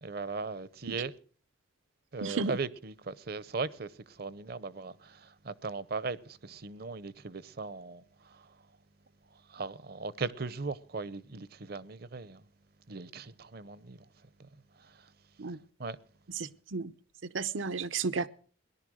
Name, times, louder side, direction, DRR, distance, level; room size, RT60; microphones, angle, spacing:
voice 1, 0.0-1.1 2.1-3.9 4.2-8.0 9.5-12.4 12.9-14.0 15.8-16.0, right 4 dB, 50° right, 0.7 m, -38 dB
voice 2, 2.2-2.5 15.4-15.6 16.7-16.9 17.3-18.3, right 4 dB, 80° right, 0.8 m, -32 dB
17.5 x 11.5 x 6.3 m
head